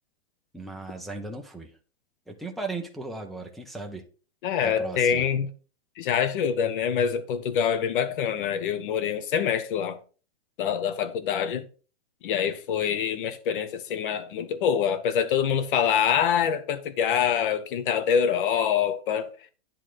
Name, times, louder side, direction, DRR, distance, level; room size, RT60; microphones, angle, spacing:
voice 1, 0.5-1.7 2.3-4.0 4.6-5.3, right 3 dB, ahead, 0.4 m, -36 dB
voice 2, 4.4-5.5 6.0-10.0 10.6-11.6 12.2-19.3, left 8 dB, 50° left, 1.3 m, -25 dB
10.5 x 3.7 x 6.2 m
supercardioid pair, 160°, 32 cm